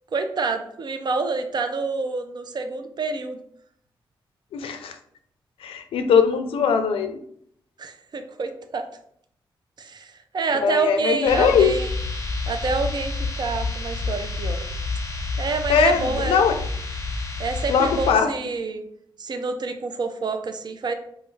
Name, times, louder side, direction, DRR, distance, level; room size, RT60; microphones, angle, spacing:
voice 1, 0.1-3.4 7.8-8.9 9.8-11.9 12.5-14.6 15.4-16.4 17.4-18.8 19.2-20.9, right 4 dB, 50° right, 7 dB, 0.4 m, -27 dB
voice 2, 4.5-4.9 5.6-7.1 10.5-11.7 15.7-16.6 17.7-18.3, left 6 dB, 90° left, 7 dB, 0.4 m, -20 dB
sound 1, 11.3-18.1, left 3 dB, 30° left, 0.6 m, -29 dB
3.1 x 2.3 x 3.2 m, 0.68 s
cardioid pair, 65°, 9 cm